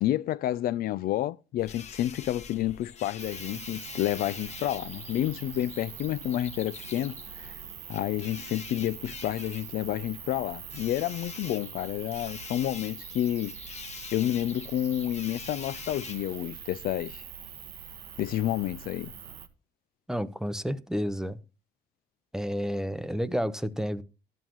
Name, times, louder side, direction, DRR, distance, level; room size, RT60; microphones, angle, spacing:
voice 1, 0.0-7.6 7.9-13.6 14.1-17.2 18.2-19.1, left 13 dB, 60° left, 0.4 m, -30 dB
sound 1, 1.6-16.4, left 6 dB, 40° left, 1.2 m, -46 dB
sound 2, 3.2-19.5, right 8 dB, 70° right, 1.2 m, -43 dB
voice 2, 20.1-21.4 22.3-24.0, equal, 5° right, 0.6 m, -30 dB
12.5 x 9.1 x 3.0 m
cardioid pair, 110°, 17 cm